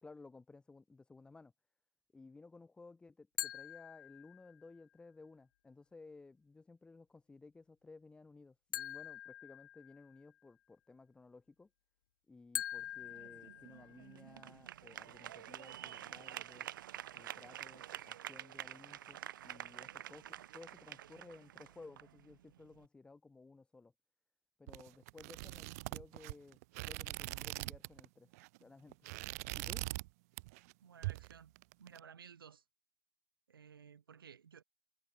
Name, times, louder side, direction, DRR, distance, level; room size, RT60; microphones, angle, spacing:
voice 1, 0.0-1.5 2.1-11.7 12.3-16.7 17.1-23.9 24.6-28.3 28.6-29.0 29.5-29.9, left 3 dB, 10° left, 1.7 m, -57 dB
sound 1, 3.4-4.7 8.7-10.3 12.5-14.2, left 12 dB, 70° left, 0.7 m, -44 dB
sound 2, 12.8-22.9, right 12 dB, 70° right, 2.3 m, -49 dB
sound 3, 24.7-28.1 28.3-28.6 28.9-30.1 30.4-30.7 31.0-32.0, right 22 dB, 45° right, 0.4 m, -42 dB
voice 2, 30.8-31.5 31.8-32.6 33.5-34.6, right 7 dB, 90° right, 3.5 m, -56 dB
hypercardioid pair, 130°, 11 cm